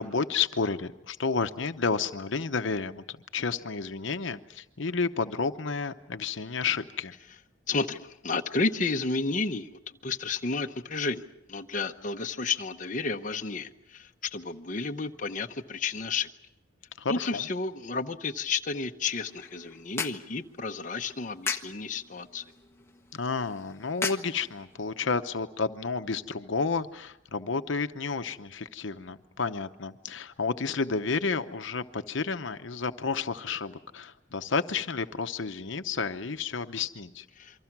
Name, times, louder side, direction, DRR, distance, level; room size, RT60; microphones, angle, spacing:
voice 1, 0.0-7.1 17.0-17.5 23.1-37.3, left 4 dB, 70° left, 9 dB, 0.9 m, -31 dB
voice 2, 7.7-9.7 10.0-16.3 17.1-22.4 37.4-37.6, left 4 dB, 40° left, 4 dB, 0.9 m, -31 dB
sound 1, 19.1-25.0, left 4 dB, 15° left, 1.2 m, -39 dB
28.0 x 24.0 x 6.0 m, 0.84 s
head